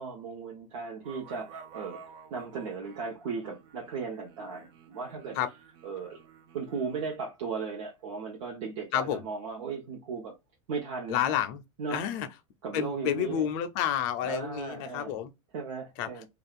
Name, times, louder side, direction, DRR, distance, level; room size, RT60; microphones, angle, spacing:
voice 1, 0.0-5.4 5.8-6.2 6.5-10.3 10.7-11.2 11.8-12.0 12.6-13.5 14.2-15.1 15.5-16.3, right 5 dB, 70° right, 0.8 m, -36 dB
sound 1, 1.0-7.1, right 6 dB, 30° right, 0.4 m, -51 dB
voice 2, 8.9-9.2 11.1-11.6 11.9-12.3 12.7-15.3 16.0-16.2, left 10 dB, 45° left, 0.5 m, -30 dB
2.4 x 2.3 x 3.5 m
supercardioid pair, 165°, 17 cm